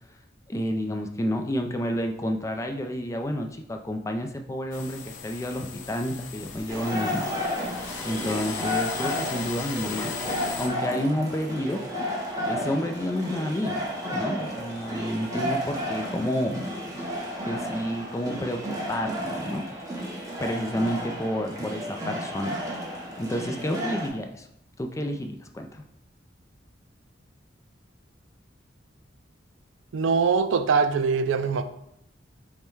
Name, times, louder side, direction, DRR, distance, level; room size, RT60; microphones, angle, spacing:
voice 1, 0.5-7.3 8.0-11.8 12.4-13.8 14.1-17.0 17.4-19.6 20.4-22.6 23.2-24.5 24.8-25.8, equal, 15° left, 4 dB, 0.3 m, -30 dB
sound 1, 4.7-10.7, left 6 dB, 85° left, 0.6 m, -37 dB
sound 2, 6.7-24.1, equal, 20° right, 0.8 m, -32 dB
voice 2, 29.9-31.6, right 5 dB, 85° right, 10 dB, 0.4 m, -22 dB
5.4 x 2.2 x 4.5 m, 0.76 s
head